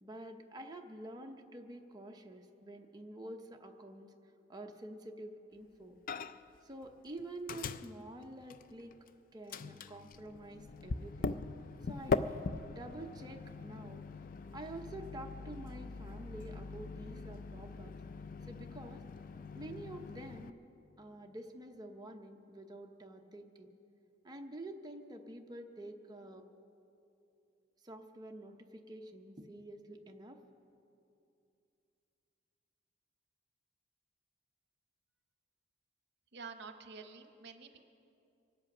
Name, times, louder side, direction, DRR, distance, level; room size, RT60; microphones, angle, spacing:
voice 1, 0.0-4.1 4.5-6.0 6.6-8.9 9.3-11.4 11.9-12.3 12.7-14.0 14.5-17.9 18.5-19.1 19.5-20.6 21.0-23.7 24.2-26.4 27.8-30.4, right 1 dB, 20° right, 3 dB, 0.8 m, -48 dB
Microwave oven, 6.1-6.6 6.8-9.1 9.5-20.5, left 4 dB, 45° left, 0.4 m, -41 dB
voice 2, 36.3-37.8, right 5 dB, 60° right, 8 dB, 1.0 m, -49 dB
24.0 x 8.4 x 6.1 m, 2.7 s
head